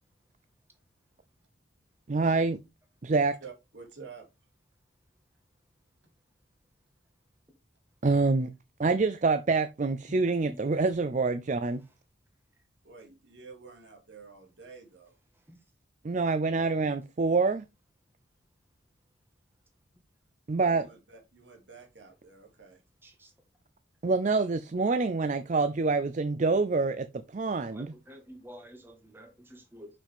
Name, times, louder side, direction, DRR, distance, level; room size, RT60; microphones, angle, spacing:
voice 1, 2.1-2.6 3.0-3.4 8.0-8.5 8.8-11.8 16.0-17.6 20.5-20.9 24.0-27.9, right 3 dB, 40° right, 0.5 m, -26 dB
voice 2, 3.4-4.3 12.8-15.2 20.6-22.8, right 5 dB, 65° right, 2.4 m, -49 dB
voice 3, 10.2-10.6 23.0-23.3 27.7-29.9, equal, 10° right, 1.5 m, -49 dB
6.9 x 5.8 x 3.5 m
head